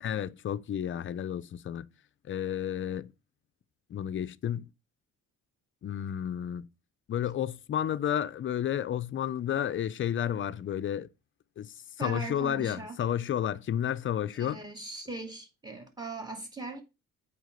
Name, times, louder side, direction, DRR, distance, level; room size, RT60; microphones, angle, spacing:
voice 1, 0.0-1.9 2.3-3.1 3.9-4.7 5.8-6.7 7.1-11.1 11.6-14.6, left 10 dB, 40° left, 0.5 m, -31 dB
voice 2, 12.0-13.0 14.4-16.8, right 3 dB, 15° right, 2.1 m, -39 dB
8.1 x 4.9 x 5.1 m
cardioid pair, 130°, 31 cm